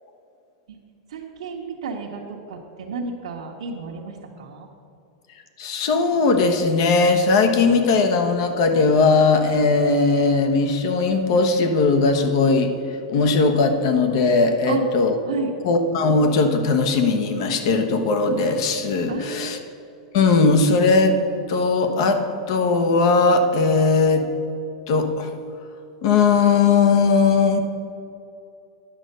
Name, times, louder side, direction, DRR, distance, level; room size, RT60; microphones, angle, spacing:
voice 1, 1.1-4.7 14.7-14.8 15.3-15.5 19.1-19.6, right 4 dB, 90° right, -3 dB, 1.1 m, -31 dB
voice 2, 5.6-12.7 13.1-15.2 15.6-19.6 20.1-21.2 21.5-22.2 22.5-24.2 24.9-25.3 26.0-27.6, left 4 dB, 55° left, 6 dB, 1.1 m, -18 dB
10.0 x 6.4 x 6.6 m, 2.6 s
supercardioid pair, 155°, 3 cm